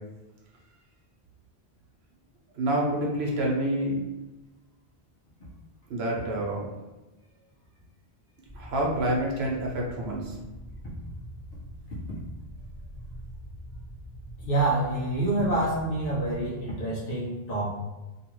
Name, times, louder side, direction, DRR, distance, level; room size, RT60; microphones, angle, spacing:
voice 1, 2.5-4.0 5.9-6.7 8.5-10.4, right 1 dB, 80° right, -2 dB, 1.0 m, -27 dB
sound 1, 8.5-16.5, equal, 20° left, 0.7 m, -43 dB
voice 2, 14.4-17.7, right 2 dB, 65° left, -8 dB, 1.0 m, -27 dB
2.8 x 2.4 x 3.0 m, 1.1 s
omnidirectional pair, 1.0 m